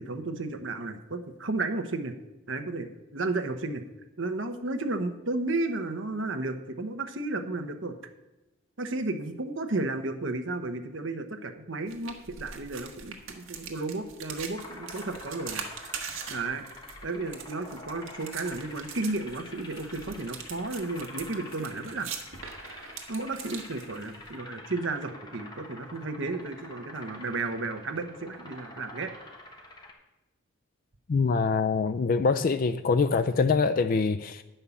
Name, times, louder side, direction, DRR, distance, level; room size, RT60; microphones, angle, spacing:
voice 1, 0.0-2.1 2.5-3.8 4.2-7.9 8.8-15.6 16.3-16.6 17.0-22.2 23.1-29.1, right 2 dB, 65° right, 7 dB, 0.9 m, -33 dB
sound 1, 11.9-24.3, right 6 dB, 85° right, 1.3 m, -42 dB
sound 2, 14.5-29.9, left 2 dB, 20° left, 1.2 m, -47 dB
voice 2, 31.1-34.4, left 4 dB, 45° left, 10 dB, 0.3 m, -24 dB
9.8 x 5.5 x 7.0 m, 1.0 s
head